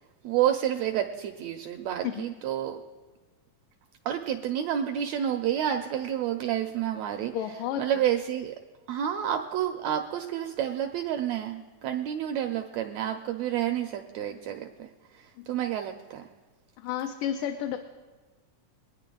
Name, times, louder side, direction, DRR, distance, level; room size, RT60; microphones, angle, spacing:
voice 1, 0.2-2.8 4.0-7.3 7.8-8.5 8.9-14.9 15.1-16.3, right 10 dB, 85° right, 6 dB, 1.5 m, -29 dB
voice 2, 7.3-7.8 15.4-15.5 16.8-17.8, left 10 dB, 85° left, 4 dB, 2.3 m, -31 dB
23.0 x 9.6 x 3.8 m, 1.3 s
omnidirectional pair, 3.7 m